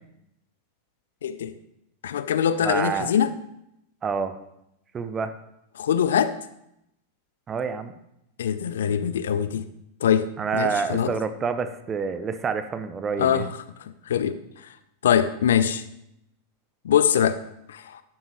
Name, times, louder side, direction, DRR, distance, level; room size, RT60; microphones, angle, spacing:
voice 1, 1.2-1.5 2.0-3.3 5.8-6.4 8.4-9.7 10.0-11.1 13.2-13.5 14.1-14.4 15.0-15.8 16.8-17.4 17.7-18.0, left 9 dB, 60° left, 13 dB, 0.5 m, -23 dB
voice 2, 2.6-3.1 4.0-4.4 4.9-5.3 7.5-7.9 10.4-13.5, right 5 dB, 20° right, 11 dB, 0.8 m, -28 dB
12.0 x 8.9 x 3.1 m, 0.81 s
figure-of-eight pair, 90°, 0 cm